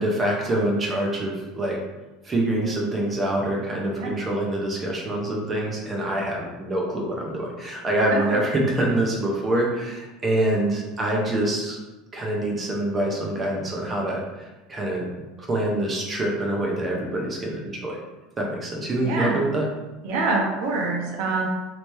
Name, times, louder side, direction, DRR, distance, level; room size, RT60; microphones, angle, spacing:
voice 1, 0.0-1.8 2.2-11.8 12.1-15.1 15.4-18.0 18.4-19.6, right 1 dB, 15° right, -1 dB, 0.6 m, -25 dB
voice 2, 19.0-19.3 20.0-21.5, right 3 dB, 60° right, -1 dB, 0.9 m, -25 dB
3.2 x 2.9 x 3.1 m, 1.1 s
cardioid pair, 170°, 0 cm